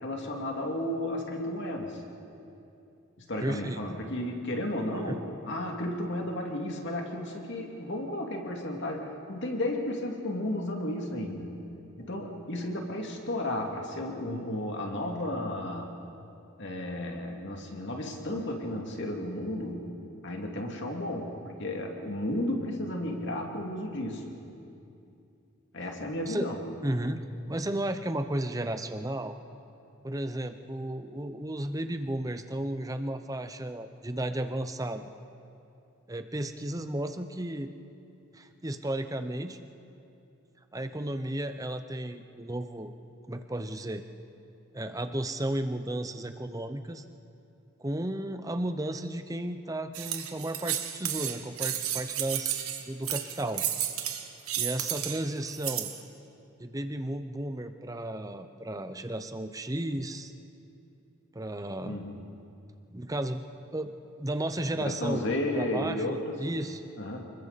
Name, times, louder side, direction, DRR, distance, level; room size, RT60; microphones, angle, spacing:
voice 1, 0.0-2.0 3.3-11.6 12.0-15.9 16.6-19.8 20.2-24.3 25.7-26.6 61.8-62.2 64.7-66.4 67.0-67.3, left 1 dB, 55° left, 1 dB, 2.4 m, -33 dB
voice 2, 3.4-3.8 5.1-5.2 26.2-26.5 26.8-29.4 30.0-35.1 36.1-37.7 38.3-39.6 40.7-42.9 43.3-44.0 44.7-47.0 47.8-52.6 52.9-53.6 54.6-55.9 56.6-60.3 61.3-62.0 62.9-63.4 63.7-63.9 64.2-65.3 65.5-66.8, right 1 dB, 15° right, 8 dB, 0.7 m, -33 dB
sound 1, 49.9-56.0, right 11 dB, 80° right, 1.6 m, -32 dB
29.5 x 21.0 x 4.2 m, 2.7 s
head